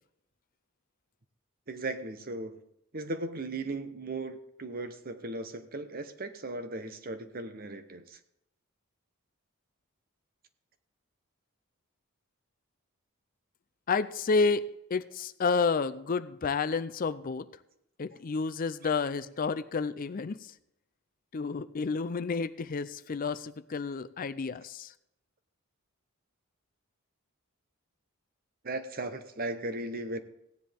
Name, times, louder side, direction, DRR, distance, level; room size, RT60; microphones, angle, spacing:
voice 1, 1.7-2.6 2.9-8.2 28.6-30.2, right 2 dB, 45° right, 10 dB, 0.9 m, -37 dB
voice 2, 13.9-17.5 18.0-20.5 21.3-24.9, left 4 dB, 40° left, 14 dB, 0.4 m, -30 dB
16.5 x 10.0 x 3.5 m, 0.81 s
head